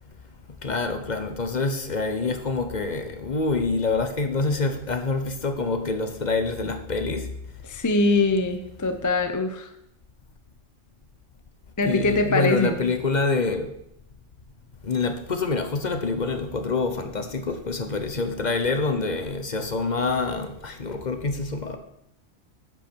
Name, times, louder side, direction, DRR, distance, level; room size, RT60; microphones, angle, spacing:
voice 1, 0.5-7.3 11.8-13.7 14.8-21.8, left 3 dB, 40° left, 7 dB, 1.0 m, -26 dB
voice 2, 7.6-9.7 11.8-12.9, left 2 dB, 20° left, 7 dB, 0.5 m, -23 dB
10.5 x 8.1 x 4.5 m, 0.78 s
omnidirectional pair, 1.3 m